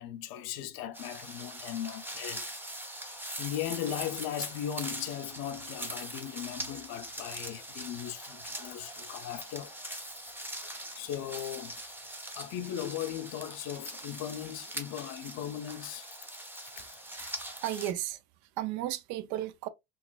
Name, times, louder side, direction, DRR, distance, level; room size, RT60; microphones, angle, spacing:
voice 1, 0.0-2.5 3.4-11.8 12.3-16.1 16.8-16.9, left 11 dB, 65° left, 0.6 m, -38 dB
sound 1, 0.9-17.9, right 1 dB, 5° right, 0.6 m, -42 dB
voice 2, 17.1-19.7, right 13 dB, 75° right, 0.6 m, -35 dB
3.8 x 2.4 x 2.3 m
cardioid pair, 110°, 39 cm